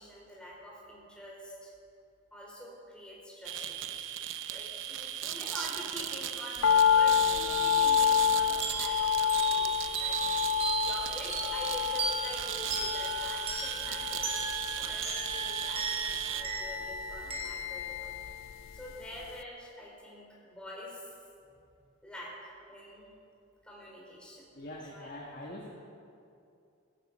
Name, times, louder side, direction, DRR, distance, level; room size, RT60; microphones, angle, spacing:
voice 1, 0.0-1.7 2.3-4.1 4.5-10.2 10.7-18.1 18.7-21.1 22.0-23.1 23.6-24.5 24.9-25.1 25.4-25.8, equal, 5° left, -5 dB, 4.4 m, -46 dB
sound 1, 3.4-16.4, right 10 dB, 75° right, 0.7 m, -37 dB
sound 2, 6.6-18.9 19.2-19.3, left 8 dB, 90° left, 0.4 m, -29 dB
sound 3, 8.6-18.9, right 3 dB, 30° right, 3.5 m, -38 dB
voice 2, 24.5-25.7, left 1 dB, 45° left, -2 dB, 1.4 m, -43 dB
16.5 x 13.5 x 5.5 m, 2.5 s
head